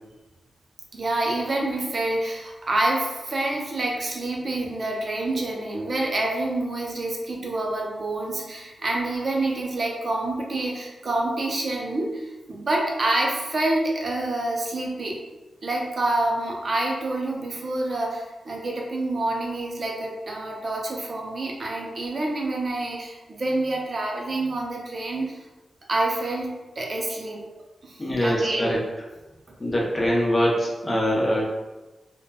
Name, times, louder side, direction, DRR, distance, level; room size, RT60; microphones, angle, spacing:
voice 1, 0.9-15.2 15.6-25.3 25.9-27.4 27.8-28.8, right 2 dB, 45° right, -1 dB, 0.5 m, -27 dB
voice 2, 28.0-28.8 29.6-31.5, equal, 25° left, -3 dB, 0.6 m, -23 dB
2.8 x 2.1 x 2.2 m, 1.1 s
wide cardioid pair, 120°, 0 cm